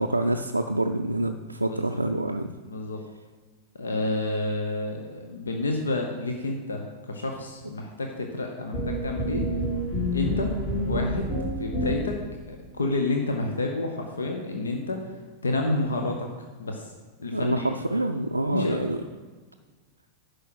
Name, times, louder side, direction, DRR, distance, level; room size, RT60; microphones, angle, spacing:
voice 1, 0.0-2.5 17.3-19.0, right 1 dB, 85° right, 3 dB, 0.4 m, -26 dB
voice 2, 1.6-2.0 2.6-3.0 3.7-9.5 10.1-10.5 10.8-11.3 11.6-16.3 16.6-16.9 17.2-17.7 18.5-18.9, left 2 dB, 70° left, 3 dB, 0.9 m, -30 dB
sound 1, 8.7-12.3, equal, 35° left, 2.7 m, -28 dB
sound 2, 9.3-12.6, right 2 dB, 55° left, 2.8 m, -49 dB
10.5 x 4.8 x 6.2 m, 1.4 s
figure-of-eight pair, 90°, 0 cm